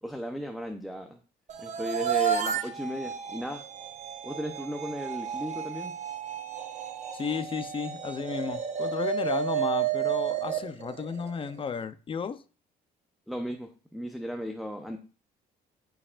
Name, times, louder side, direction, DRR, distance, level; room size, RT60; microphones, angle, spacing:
voice 1, 0.0-1.2 1.6-3.6 4.2-5.9 13.3-15.0, equal, ahead, 0.8 m, -35 dB
sound 1, 1.5-11.7, right 8 dB, 45° right, 1.1 m, -32 dB
voice 2, 7.1-12.4, left 6 dB, 30° left, 0.6 m, -33 dB
12.5 x 4.8 x 2.5 m
cardioid pair, 110°, 17 cm